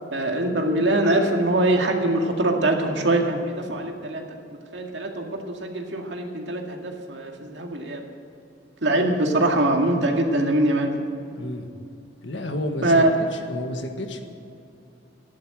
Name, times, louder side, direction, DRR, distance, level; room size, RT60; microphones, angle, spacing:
voice 1, 0.1-4.2 4.7-8.0 8.8-10.9 12.8-13.1, right 1 dB, 80° right, 2 dB, 2.1 m, -23 dB
voice 2, 11.3-11.7 12.2-14.2, left 1 dB, 85° left, 5 dB, 1.6 m, -31 dB
13.5 x 11.0 x 7.8 m, 2.6 s
head